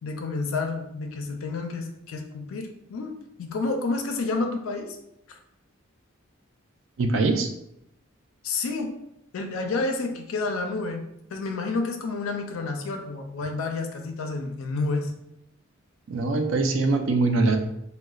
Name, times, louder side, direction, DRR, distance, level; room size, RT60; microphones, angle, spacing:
voice 1, 0.0-5.0 5.3-5.4 8.4-8.9 9.3-11.0 11.3-15.1, left 3 dB, 80° left, 4 dB, 0.4 m, -30 dB
voice 2, 7.0-7.5 16.1-17.6, right 3 dB, 65° right, 4 dB, 0.4 m, -22 dB
3.9 x 2.1 x 2.3 m, 0.80 s
head